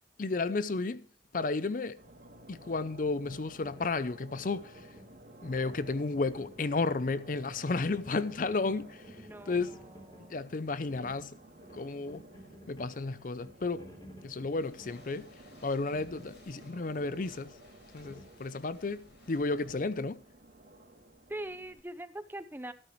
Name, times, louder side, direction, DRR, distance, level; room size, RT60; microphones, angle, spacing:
voice 1, 0.2-1.1 1.3-2.0 2.5-4.9 5.4-9.2 9.5-9.8 10.2-11.4 11.7-12.2 12.7-13.9 14.2-15.3 15.6-17.5 17.9-20.2, left 3 dB, 50° left, 0.5 m, -33 dB
sound 1, 2.0-21.8, right 1 dB, 50° right, 2.5 m, -54 dB
sound 2, 3.2-18.9, equal, 20° left, 3.5 m, -55 dB
voice 2, 9.2-9.8 10.1-10.4 21.3-22.7, right 1 dB, 10° right, 0.6 m, -42 dB
sound 3, 14.6-19.9, left 2 dB, 80° left, 4.5 m, -59 dB
13.0 x 11.5 x 3.1 m
head